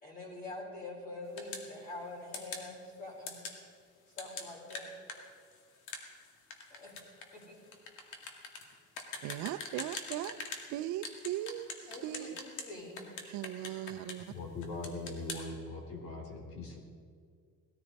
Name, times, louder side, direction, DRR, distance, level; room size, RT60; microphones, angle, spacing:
voice 1, 0.0-3.4 4.1-4.9 6.7-6.9 7.3-7.6 11.9-13.1, left 2 dB, 30° left, -3 dB, 4.8 m, -45 dB
sound 1, 1.4-1.7 2.3-2.7 3.3-3.6 4.2-10.7 11.0-12.7 13.0-14.3 14.6-15.4, left 4 dB, 80° left, 2.2 m, -43 dB
voice 2, 9.2-10.4 10.7-12.4 13.2-14.2, right 13 dB, 75° right, 12 dB, 0.6 m, -38 dB
voice 3, 14.3-16.8, left 2 dB, 45° left, 2 dB, 3.0 m, -41 dB
19.5 x 14.0 x 4.1 m, 2.2 s
cardioid pair, 145°, 30 cm